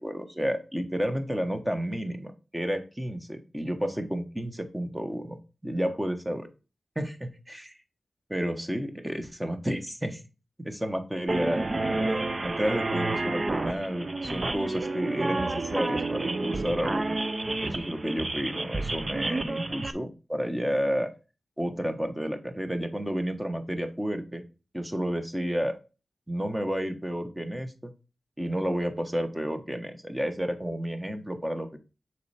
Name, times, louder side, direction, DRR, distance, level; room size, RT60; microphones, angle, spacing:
voice 1, 0.0-6.5 6.9-7.8 8.3-10.2 10.6-17.1 17.6-21.1 21.6-24.4 24.7-25.8 26.3-27.9 28.4-31.8, equal, 10° right, 6 dB, 1.4 m, -31 dB
sound 1, 11.3-19.9, right 2 dB, 40° right, 0.7 m, -30 dB
6.8 x 4.6 x 4.3 m, 0.31 s
cardioid pair, 55°, 0 cm